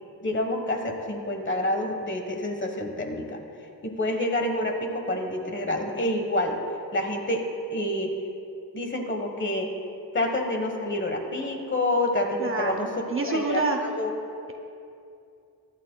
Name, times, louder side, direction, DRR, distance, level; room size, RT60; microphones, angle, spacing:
voice 1, 0.2-3.4 3.8-6.6 6.9-7.5 7.7-8.2 8.7-9.7 10.1-12.9 13.3-14.2, left 1 dB, 25° left, 3 dB, 1.2 m, -28 dB
voice 2, 12.4-13.8, right 3 dB, 30° right, 3 dB, 0.7 m, -27 dB
22.5 x 11.0 x 2.2 m, 2.5 s
wide cardioid pair, 175°, 42 cm